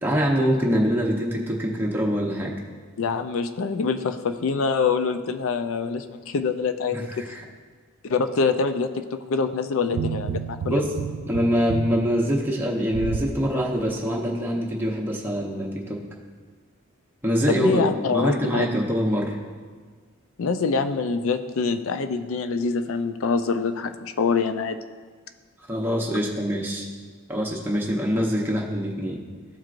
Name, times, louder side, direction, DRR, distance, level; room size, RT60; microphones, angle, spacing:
voice 1, 0.0-2.5 6.9-7.4 10.7-10.9 11.3-16.0 17.2-19.4 25.7-26.9 27.3-29.2, equal, 10° right, -3 dB, 0.8 m, -24 dB
voice 2, 3.0-7.1 8.0-10.8 17.5-18.7 20.4-24.8, left 5 dB, 70° left, 9 dB, 0.4 m, -25 dB
sound 1, 9.9-13.3 13.8-13.9, right 6 dB, 75° right, 0.3 m, -32 dB
13.0 x 4.5 x 2.5 m, 1.5 s
head